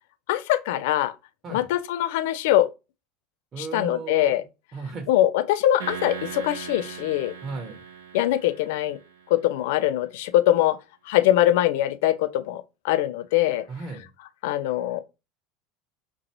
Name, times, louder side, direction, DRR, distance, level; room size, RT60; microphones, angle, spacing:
voice 1, 0.3-1.1 1.5-2.7 3.6-4.4 5.1-7.3 8.1-9.0 9.3-10.8 11.1-13.6 14.4-15.0, left 13 dB, 70° left, 0.4 m, -22 dB
voice 2, 3.5-4.4 4.7-5.1 7.4-7.8 13.7-14.1, right 4 dB, 40° right, 0.9 m, -35 dB
sound 1, 5.8-9.3, right 7 dB, 85° right, 0.7 m, -39 dB
4.4 x 2.6 x 2.9 m
hypercardioid pair, 80°, 0 cm